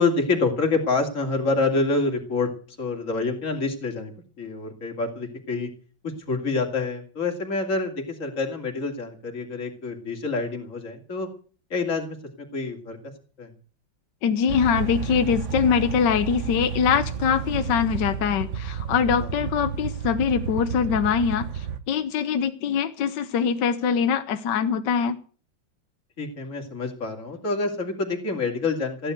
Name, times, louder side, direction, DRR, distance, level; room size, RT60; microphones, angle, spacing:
voice 1, 0.0-2.5 2.8-4.1 4.4-5.7 6.0-11.3 11.7-13.0 13.4-13.5 19.2-19.3 26.2-29.1, left 3 dB, 40° left, 3 dB, 3.0 m, -27 dB
voice 2, 14.2-25.2, left 7 dB, 70° left, 9 dB, 1.5 m, -23 dB
sound 1, 14.5-21.8, right 7 dB, 45° right, 1.2 m, -31 dB
15.5 x 9.3 x 7.9 m, 0.41 s
omnidirectional pair, 2.1 m